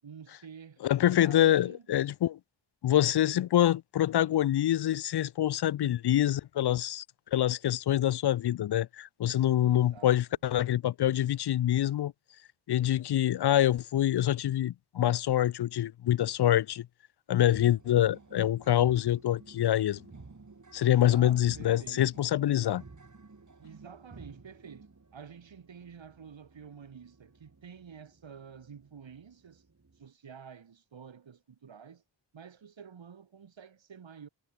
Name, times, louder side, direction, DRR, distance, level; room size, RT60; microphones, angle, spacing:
voice 1, 0.0-0.8 1.1-1.8 5.8-6.3 9.6-10.2 20.8-22.2 23.6-29.6 30.0-32.0 32.3-34.3, right 7 dB, 90° right, 5.4 m, -50 dB
voice 2, 0.8-2.4 2.8-7.0 7.3-12.1 12.7-16.9 17.3-20.0 20.7-22.8, left 12 dB, 65° left, 0.5 m, -26 dB
sound 1, 17.4-30.1, right 3 dB, 40° right, 6.5 m, -54 dB
wide cardioid pair, 80°, 44 cm